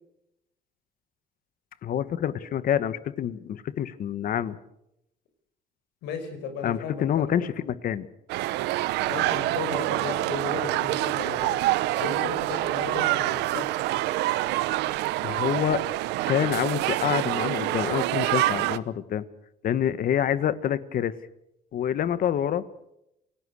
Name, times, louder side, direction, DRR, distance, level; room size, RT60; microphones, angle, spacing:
voice 1, 1.8-4.6 6.6-8.1 15.2-15.8 16.3-19.2 19.6-21.1 21.7-22.6, left 9 dB, 55° left, 15 dB, 1.5 m, -27 dB
voice 2, 6.0-7.5 9.1-11.6 11.9-13.9, left 5 dB, 90° left, 7 dB, 5.2 m, -36 dB
sound 1, 8.3-18.8, right 16 dB, 90° right, 0.9 m, -26 dB
28.5 x 17.5 x 6.5 m, 0.83 s
cardioid pair, 110°, 17 cm